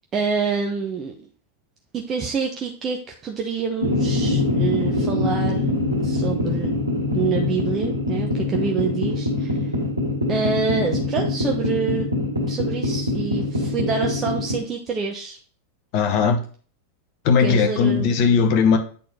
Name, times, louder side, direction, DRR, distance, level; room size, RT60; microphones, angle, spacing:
voice 1, 0.1-1.3 1.9-5.7 6.0-6.7 7.1-9.7 10.3-12.1 12.5-15.4 17.4-18.1, right 5 dB, 25° right, 0.9 m, -27 dB
sound 1, 3.8-14.6, left 2 dB, 85° right, 1.6 m, -24 dB
voice 2, 15.9-16.4 17.2-18.8, left 6 dB, 45° left, 1.1 m, -18 dB
8.4 x 4.3 x 4.2 m
figure-of-eight pair, 90°, 0 cm